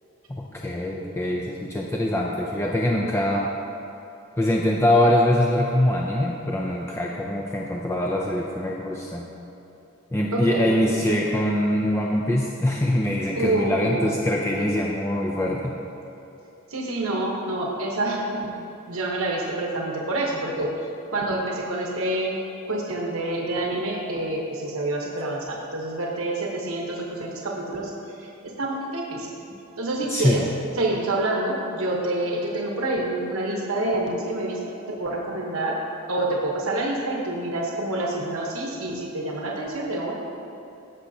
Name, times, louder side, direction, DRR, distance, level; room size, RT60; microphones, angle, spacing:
voice 1, 0.3-3.5 4.4-9.2 10.1-15.7 30.1-30.5, left 1 dB, 10° left, -2 dB, 0.4 m, -23 dB
voice 2, 10.3-11.1 13.3-14.2 14.6-14.7 16.7-18.5 18.9-20.7 21.1-22.4 22.7-28.3 28.6-29.3 29.8-30.4 30.8-34.6 35.0-35.7 36.1-40.1, right 2 dB, 70° right, -1 dB, 1.0 m, -27 dB
14.0 x 5.8 x 2.8 m, 2.9 s
head